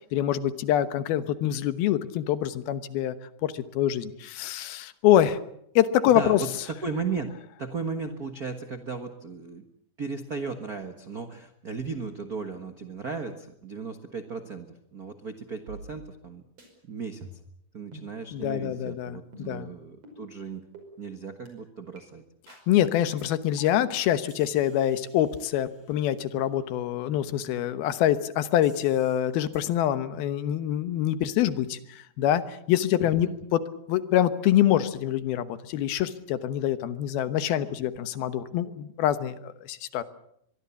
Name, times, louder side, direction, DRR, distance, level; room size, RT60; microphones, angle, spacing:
voice 1, 0.1-3.2 3.4-5.4 5.8-6.4 18.3-19.7 22.7-33.6 33.9-40.0, left 11 dB, 85° left, 12 dB, 3.0 m, -25 dB
voice 2, 6.1-7.3 7.6-9.6 10.0-16.4 16.8-17.3 17.7-20.6 21.0-22.2 33.0-33.3, right 4 dB, 70° right, 7 dB, 0.8 m, -36 dB
sound 1, 15.7-16.3 16.6-16.7 17.2-17.6 17.9-18.1 18.6-18.8 19.3-19.6 20.0-20.2 20.7-20.9 21.5-21.6 22.0-22.1 22.5-22.7 23.2-23.3 23.6-23.9 24.3-26.1 28.6-29.2 29.5-29.6, right 2 dB, 40° right, 6.4 m, -49 dB
23.5 x 22.5 x 7.1 m, 0.73 s
omnidirectional pair, 4.3 m